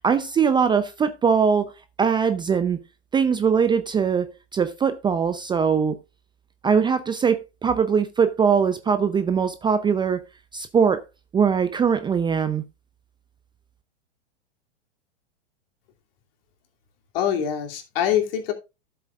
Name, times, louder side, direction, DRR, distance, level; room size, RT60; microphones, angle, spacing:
voice 1, 0.0-1.7 2.0-2.8 3.1-6.0 6.6-10.2 10.5-11.0 11.3-12.6, right 6 dB, 15° right, 0.6 m, -21 dB
voice 2, 17.1-18.5, left 9 dB, 55° left, 2.9 m, -24 dB
13.0 x 7.8 x 2.4 m
hypercardioid pair, 105°, 34 cm